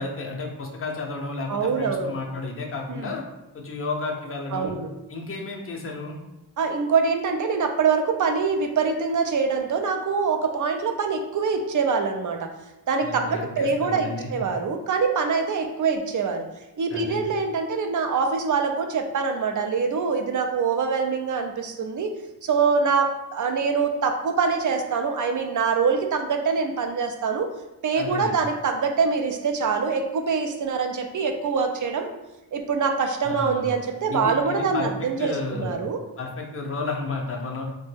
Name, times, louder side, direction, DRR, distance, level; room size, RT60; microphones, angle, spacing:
voice 1, 0.0-3.2 3.5-4.7 5.1-6.2 13.0-14.3 16.9-17.2 28.0-28.4 33.2-33.8 34.1-35.8 36.2-37.7, left 3 dB, 35° left, 1 dB, 0.6 m, -32 dB
voice 2, 1.5-2.1 2.9-3.0 4.5-4.9 6.6-12.5 12.9-16.4 16.8-22.1 22.4-27.5 27.8-32.1 32.5-36.0, right 5 dB, 50° right, 5 dB, 0.5 m, -24 dB
3.3 x 2.2 x 3.2 m, 0.96 s
wide cardioid pair, 95°, 41 cm